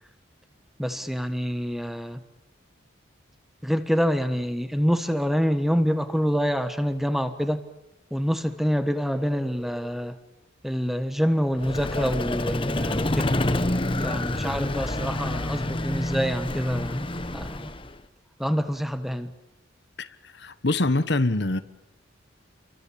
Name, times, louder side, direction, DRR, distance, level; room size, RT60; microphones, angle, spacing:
voice 1, 0.8-2.2 3.6-7.6 8.1-10.2 10.6-13.3 14.0-17.7 18.4-19.3, equal, ahead, 10 dB, 1.3 m, -26 dB
Vehicle, 11.6-18.0, left 1 dB, 25° left, 1.2 m, -28 dB
voice 2, 20.0-21.6, left 2 dB, 55° left, 12 dB, 1.2 m, -25 dB
29.0 x 24.0 x 8.6 m, 0.87 s
head